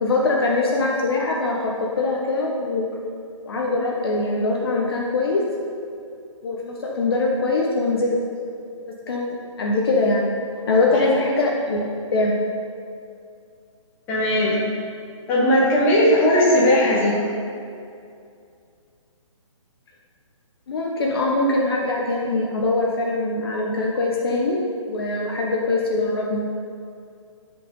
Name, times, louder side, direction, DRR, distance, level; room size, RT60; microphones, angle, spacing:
voice 1, 0.0-2.9 3.4-5.4 6.4-8.2 9.1-10.3 10.7-11.8 12.1-12.3 20.7-24.6 24.9-26.4, left 2 dB, 45° left, -2 dB, 1.0 m, -22 dB
voice 2, 14.1-14.5 15.3-17.2, left 1 dB, 10° left, -8 dB, 1.5 m, -17 dB
13.0 x 5.0 x 3.9 m, 2.4 s
hypercardioid pair, 170°, 17 cm